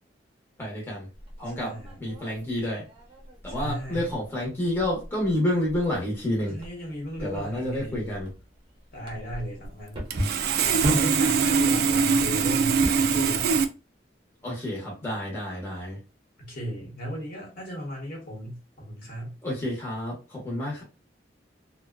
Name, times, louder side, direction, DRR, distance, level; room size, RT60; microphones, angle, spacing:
voice 1, 0.6-1.1 1.4-1.7 2.0-2.8 3.4-6.6 7.2-8.3 14.4-16.0 19.4-20.8, left 1 dB, 15° left, 0.9 m, -29 dB
sound 1, 1.1-13.3, equal, 30° right, 0.7 m, -36 dB
voice 2, 1.6-2.0 3.5-4.1 6.5-8.0 8.9-10.1 10.9-13.5 16.4-19.3, equal, 55° left, 1.1 m, -36 dB
Sawing, 9.6-9.7 10.1-13.6, right 5 dB, 60° right, 0.3 m, -22 dB
2.6 x 2.2 x 2.3 m
head